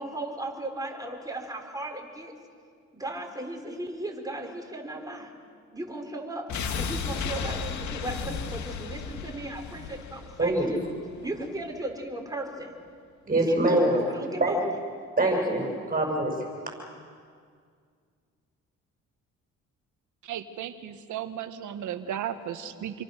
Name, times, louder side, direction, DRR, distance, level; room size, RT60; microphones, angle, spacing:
voice 1, 0.0-2.3 2.9-5.3 5.7-6.4 6.7-10.8 11.2-12.7 13.5-14.6, right 2 dB, 10° right, 2 dB, 4.6 m, -36 dB
sound 1, 6.5-11.4 11.7-11.8, left 5 dB, 75° left, 2.0 m, -34 dB
voice 2, 13.3-14.0 14.4-14.6 15.2-16.3, right 1 dB, 30° right, 1 dB, 7.2 m, -24 dB
voice 3, 20.2-23.0, right 10 dB, 75° right, 10 dB, 1.5 m, -35 dB
28.5 x 23.0 x 6.7 m, 2.1 s
cardioid pair, 90°, 30 cm